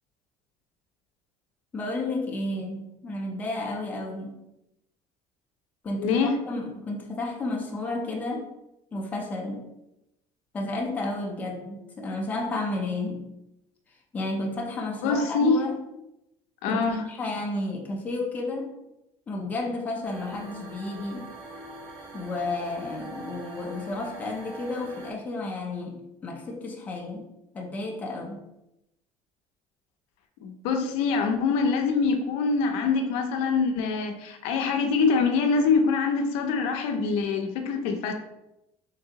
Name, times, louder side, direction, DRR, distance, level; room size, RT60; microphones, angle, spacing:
voice 1, 1.7-4.4 5.8-6.2 6.5-8.5 8.9-9.7 10.5-13.3 14.1-15.8 16.7-16.8 17.1-18.7 19.3-21.3 22.1-27.3 27.5-28.4, left 2 dB, 15° left, 0 dB, 0.5 m, -32 dB
voice 2, 6.0-6.4 15.0-15.6 16.6-17.1 30.4-38.1, left 4 dB, 70° left, 4 dB, 0.5 m, -24 dB
sound 1, 20.0-25.1, right 2 dB, 55° right, 1.0 m, -43 dB
3.7 x 3.2 x 2.8 m, 0.88 s
cardioid pair, 180°, 11 cm